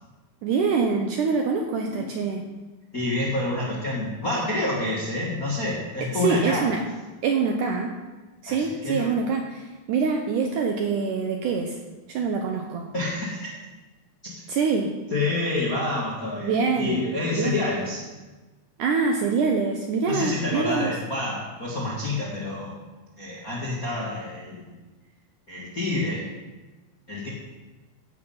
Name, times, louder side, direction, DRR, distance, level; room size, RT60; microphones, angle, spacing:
voice 1, 0.4-2.5 6.0-6.8 7.2-8.0 8.4-11.8 12.1-12.9 14.5-15.0 16.4-17.1 17.3-17.6 18.8-21.0, right 5 dB, 75° right, 3 dB, 1.9 m, -25 dB
voice 2, 2.9-6.7 8.5-9.1 12.9-13.6 14.2-14.4 15.1-18.0 20.0-22.7 23.2-24.7 25.5-26.2 27.1-27.3, left 2 dB, 45° left, -5 dB, 1.1 m, -28 dB
15.5 x 6.3 x 5.6 m, 1.2 s
omnidirectional pair, 4.5 m